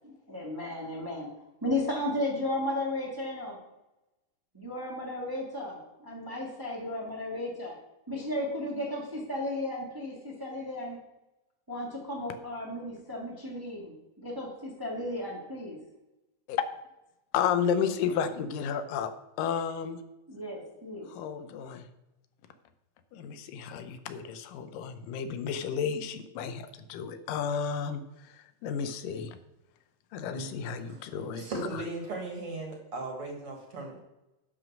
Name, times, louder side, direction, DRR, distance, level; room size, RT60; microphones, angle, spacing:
voice 1, 0.0-1.3 1.6-3.6 4.5-7.7 8.1-11.0 11.7-15.8 20.3-21.1, left 1 dB, 10° right, -2 dB, 1.2 m, -34 dB
voice 2, 17.3-19.1 19.4-20.0 21.1-21.9 23.1-29.4 30.1-31.5 31.7-31.8, left 7 dB, 90° left, 10 dB, 2.4 m, -32 dB
voice 3, 30.8-34.0, right 2 dB, 50° right, 1 dB, 2.4 m, -38 dB
11.0 x 5.1 x 6.1 m, 0.96 s
omnidirectional pair, 3.8 m